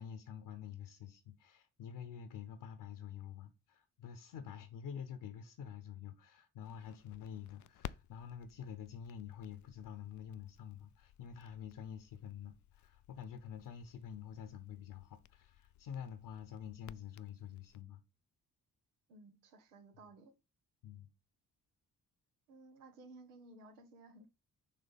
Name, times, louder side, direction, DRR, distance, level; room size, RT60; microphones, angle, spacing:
voice 1, 0.0-18.0 20.8-21.1, left 8 dB, 60° left, 1.0 m, -48 dB
Crackle, 6.6-17.8, left 12 dB, 45° left, 0.5 m, -56 dB
voice 2, 19.1-20.3 22.5-24.3, right 2 dB, 85° right, 1.0 m, -57 dB
6.7 x 3.3 x 5.4 m
hypercardioid pair, 40°, 44 cm